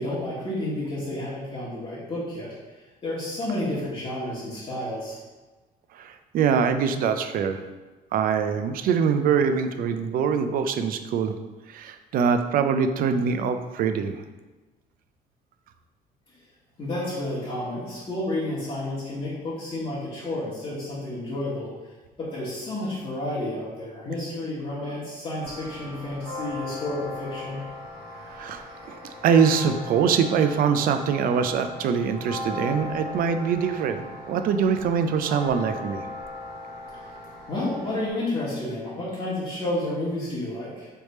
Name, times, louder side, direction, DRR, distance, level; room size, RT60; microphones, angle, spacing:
voice 1, 0.0-2.5 3.0-5.2 16.8-27.6 37.5-40.9, left 1 dB, 35° left, -9 dB, 1.3 m, -31 dB
voice 2, 5.9-7.6 8.1-11.4 11.7-14.2 28.3-36.1, right 6 dB, 60° right, 8 dB, 0.4 m, -24 dB
sound 1, 25.4-38.1, left 2 dB, 80° right, 0.9 m, -38 dB
3.4 x 3.2 x 4.1 m, 1.2 s
cardioid pair, 110°, 17 cm